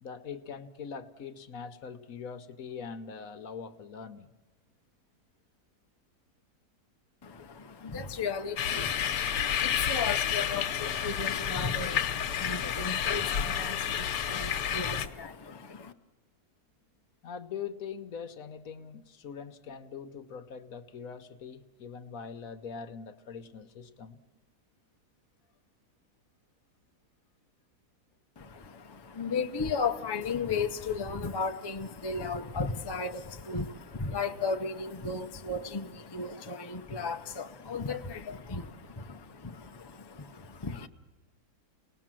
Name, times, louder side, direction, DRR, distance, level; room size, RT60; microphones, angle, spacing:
voice 1, 0.0-4.3 17.2-24.2, left 6 dB, 60° left, 9 dB, 1.3 m, -42 dB
voice 2, 7.2-15.9 28.4-40.9, left 4 dB, 30° left, 5 dB, 0.4 m, -35 dB
sound 1, 8.6-15.1, left 9 dB, 90° left, 1.5 m, -30 dB
sound 2, 13.2-14.5, right 1 dB, 10° right, 5.1 m, -55 dB
29.0 x 19.0 x 7.5 m, 1.3 s
omnidirectional pair, 1.8 m